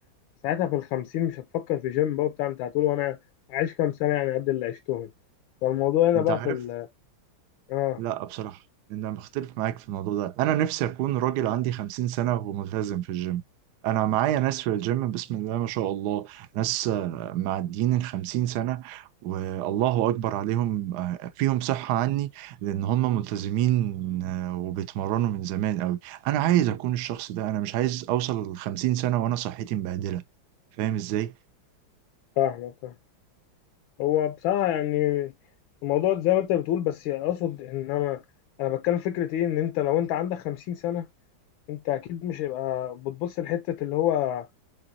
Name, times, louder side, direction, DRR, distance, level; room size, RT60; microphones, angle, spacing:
voice 1, 0.4-3.2 3.5-5.1 5.6-6.9 7.7-8.0 32.4-32.9 34.0-35.3 35.8-38.2 38.6-41.1 41.7-44.5, left 12 dB, 80° left, 1.3 m, -26 dB
voice 2, 6.1-6.6 8.0-8.6 8.9-13.4 13.8-30.2 30.8-31.3, right 12 dB, 75° right, 0.9 m, -27 dB
5.1 x 3.7 x 2.6 m
omnidirectional pair, 2.3 m